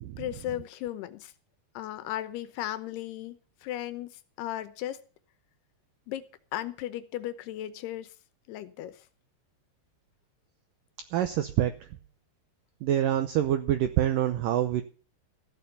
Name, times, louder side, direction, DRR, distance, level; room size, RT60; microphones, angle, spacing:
voice 1, 0.2-1.3 1.7-5.0 6.1-6.2 6.5-8.1 8.5-9.0, left 13 dB, 75° left, 2.9 m, -36 dB
voice 2, 11.1-11.7 12.8-14.8, right 11 dB, 80° right, 1.9 m, -26 dB
14.5 x 7.0 x 8.0 m
omnidirectional pair, 4.9 m